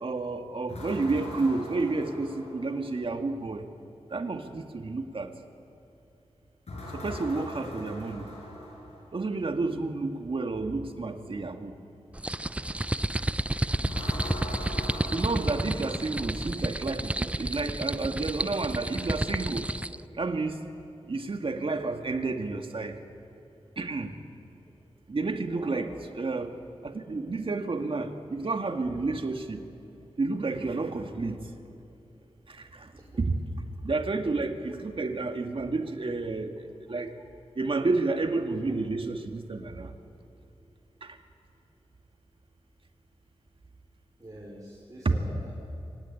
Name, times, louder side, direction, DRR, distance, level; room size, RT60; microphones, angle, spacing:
voice 1, 0.0-3.7 4.1-5.3 6.9-8.3 9.1-11.7 15.1-19.7 20.1-20.6 21.1-23.0 23.8-24.1 25.1-26.6 26.8-29.6 30.2-31.5 32.5-32.9 33.2-33.4 33.8-37.1 37.6-39.9 41.0-41.2 45.0-45.1, right 3 dB, 55° right, 5 dB, 1.8 m, -30 dB
sound 1, 0.7-3.0 6.7-9.2 13.8-16.5, left 1 dB, 80° left, 6.7 m, -40 dB
sound 2, 12.1-20.0, right 1 dB, 10° right, 0.5 m, -31 dB
voice 2, 15.4-15.8 24.7-24.8 25.5-25.8 32.9-33.1 44.2-45.5, right 1 dB, 35° right, -3 dB, 3.9 m, -45 dB
25.0 x 16.0 x 9.7 m, 2.9 s
wide cardioid pair, 70°, 11 cm